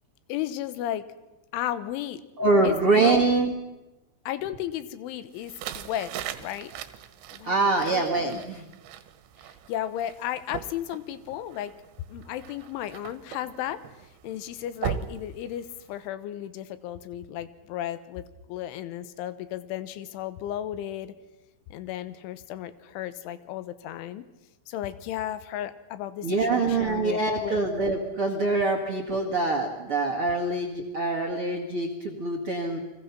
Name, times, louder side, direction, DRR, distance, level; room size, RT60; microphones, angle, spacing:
voice 1, 0.3-1.0 1.5-2.2 2.6-3.2 4.3-6.1 6.4-6.7 7.3-7.6 7.9-8.4 9.5-11.7 12.1-13.8 14.2-18.2 18.5-21.2 21.7-24.2 24.7-27.6, left 12 dB, 85° left, 13 dB, 3.5 m, -34 dB
voice 2, 2.4-3.5 7.4-8.7 26.2-32.8, right 3 dB, 45° right, 3 dB, 1.8 m, -24 dB
sound 1, 5.3-16.1, right 9 dB, 75° right, 3.3 m, -40 dB
30.0 x 21.5 x 6.0 m, 1.0 s
omnidirectional pair, 5.5 m